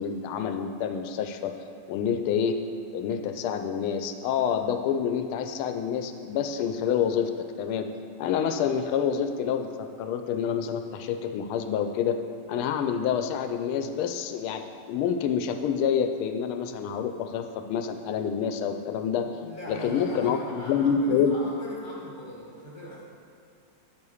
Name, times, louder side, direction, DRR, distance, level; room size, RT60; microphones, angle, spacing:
voice 1, 0.0-1.5 1.9-2.6 2.9-7.3 7.6-7.9 8.2-12.2 12.5-14.6 14.9-19.3 19.7-21.3, left 7 dB, 85° left, 7 dB, 1.5 m, -27 dB
voice 2, 19.4-23.0, left 1 dB, 20° right, -4 dB, 0.7 m, -40 dB
8.7 x 4.5 x 6.3 m, 2.4 s
omnidirectional pair, 2.3 m